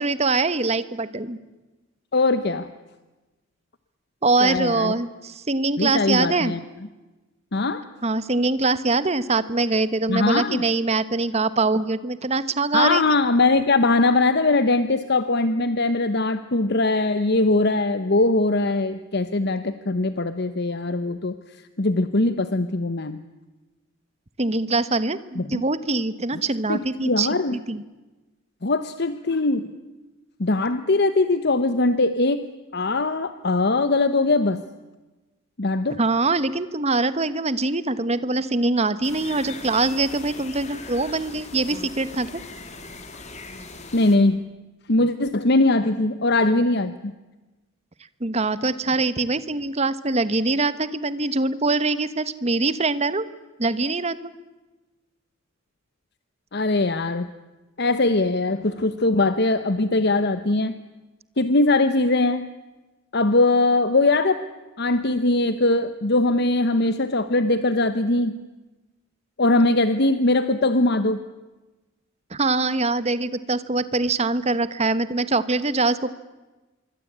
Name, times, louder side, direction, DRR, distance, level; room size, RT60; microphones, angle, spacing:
voice 1, 0.0-1.4 4.2-6.5 8.0-13.0 24.4-27.3 27.7-27.8 35.9-42.4 48.2-53.3 53.6-54.3 72.3-76.1, right 3 dB, 30° right, 15 dB, 1.1 m, -23 dB
voice 2, 2.1-2.7 4.4-4.9 5.8-6.6 7.5-7.9 10.1-10.6 12.7-21.3 21.8-23.2 25.4-25.6 26.3-26.4 26.7-27.6 28.6-29.7 30.4-32.5 32.7-34.6 35.6-36.0 43.9-44.5 44.9-47.1 56.5-57.3 57.8-60.7 61.4-62.5 63.1-64.4 64.8-68.4 69.4-71.2, left 2 dB, 55° left, 11 dB, 1.0 m, -21 dB
sound 1, 39.0-44.2, left 3 dB, 35° left, 3.2 m, -40 dB
26.0 x 23.5 x 8.7 m, 1.2 s
head